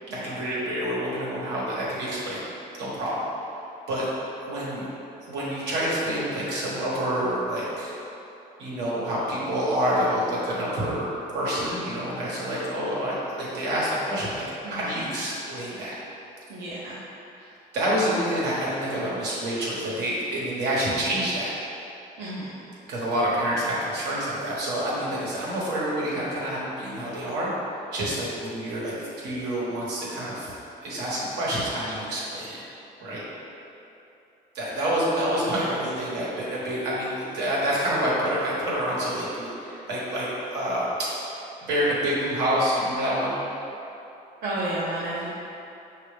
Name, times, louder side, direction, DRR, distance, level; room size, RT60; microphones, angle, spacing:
voice 1, 0.1-2.4 2.8-3.2 3.9-4.1 4.4-4.8 5.2-7.9 8.6-15.9 17.4-21.5 22.9-27.5 27.9-30.5 30.8-32.6 33.0-33.2 34.5-41.4 41.7-43.4, equal, 80° right, -7 dB, 1.3 m, -27 dB
voice 2, 16.5-17.0 22.2-22.5 35.5-35.6 44.4-45.3, right 1 dB, 65° right, -9 dB, 0.8 m, -31 dB
5.3 x 2.8 x 3.4 m, 2.8 s
cardioid pair, 110°, 17 cm